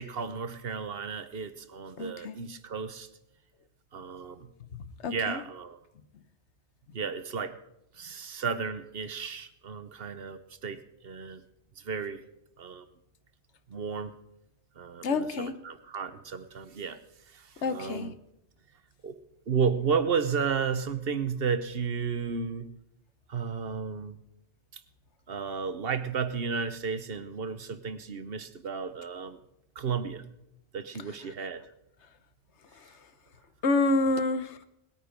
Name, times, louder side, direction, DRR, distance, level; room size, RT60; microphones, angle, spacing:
voice 1, 0.0-3.1 3.9-4.5 5.1-5.8 6.9-7.6 8.0-11.4 11.8-12.2 12.6-12.9 13.7-14.1 14.8-17.0 17.3-18.1 19.0-19.2 19.5-22.7 23.3-24.2 25.3-29.4 29.8-30.2 30.7-31.6, right 6 dB, 60° right, 12 dB, 1.1 m, -33 dB
voice 2, 2.0-2.4 4.7-5.4 15.0-15.5 17.6-18.1 33.6-34.6, left 2 dB, 85° left, 12 dB, 1.2 m, -28 dB
19.5 x 9.1 x 5.1 m, 0.83 s
omnidirectional pair, 1.1 m